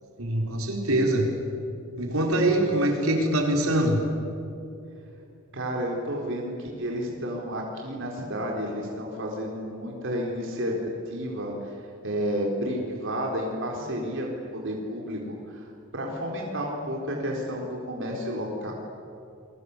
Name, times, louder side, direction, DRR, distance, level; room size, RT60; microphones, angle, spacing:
voice 1, 0.2-1.3 2.0-4.0, right 1 dB, 85° right, 1 dB, 4.7 m, -23 dB
voice 2, 5.5-10.8 11.1-11.7 12.0-18.7, equal, 60° right, -1 dB, 4.0 m, -31 dB
29.5 x 23.0 x 8.3 m, 2.6 s
head